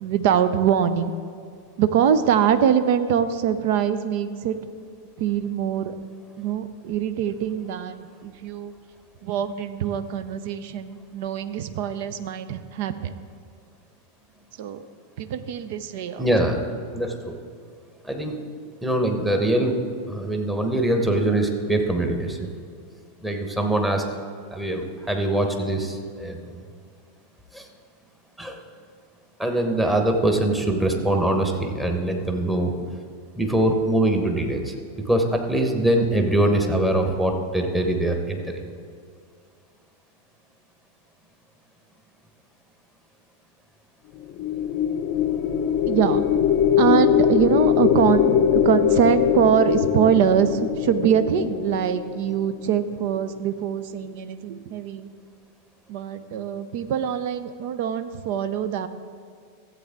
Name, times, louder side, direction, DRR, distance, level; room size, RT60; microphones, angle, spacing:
voice 1, 0.0-1.1 1.8-4.6 5.2-6.0 6.4-8.7 9.2-13.2 14.6-14.8 15.2-16.3 45.9-46.2 46.8-55.1 55.9-58.9, right 8 dB, 50° right, 12 dB, 0.5 m, -23 dB
voice 2, 16.2-16.6 16.9-17.4 18.0-18.3 18.8-19.8 20.1-22.5 23.2-24.0 24.5-26.6 27.5-27.7 28.4-28.6 29.4-32.7 33.3-38.6, right 1 dB, 5° right, 3 dB, 1.2 m, -23 dB
sound 1, 44.2-52.6, left 9 dB, 40° left, 0.6 m, -22 dB
14.0 x 8.1 x 3.7 m, 2.3 s
figure-of-eight pair, 90°, 0 cm